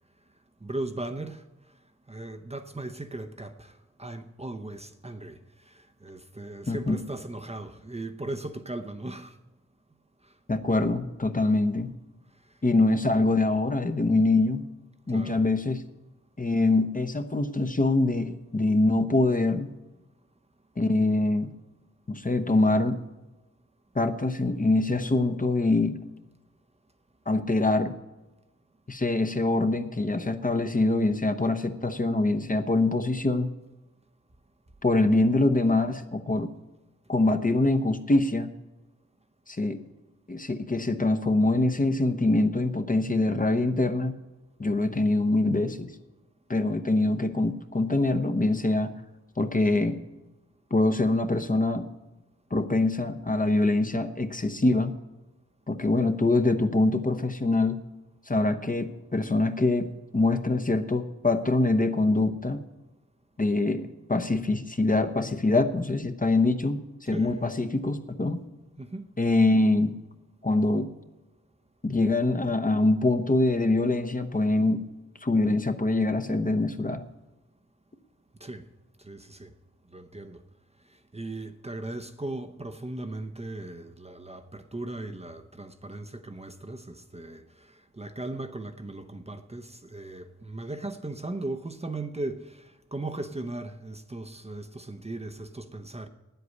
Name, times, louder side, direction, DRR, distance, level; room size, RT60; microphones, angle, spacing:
voice 1, 0.6-1.4 2.1-5.4 5.7-9.4 15.1-15.4 67.1-67.4 68.8-69.1 78.4-78.6 79.0-79.5 79.9-80.4 81.1-96.1, right 2 dB, 20° right, 0.7 m, -38 dB
voice 2, 6.7-7.0 10.5-11.9 12.6-14.6 15.1-15.8 16.4-19.7 20.8-21.5 22.1-23.0 23.9-26.0 27.3-27.9 28.9-33.5 34.8-36.5 37.1-38.5 39.5-39.8 40.3-44.1 44.6-45.9 46.5-48.9 49.4-50.0 50.7-51.9 52.5-54.9 55.7-57.8 58.3-62.6 63.4-68.4 69.2-69.9 70.4-70.9 71.8-74.8 75.2-77.1, left 2 dB, 30° left, 0.8 m, -24 dB
9.5 x 8.0 x 9.4 m
wide cardioid pair, 75°, 29 cm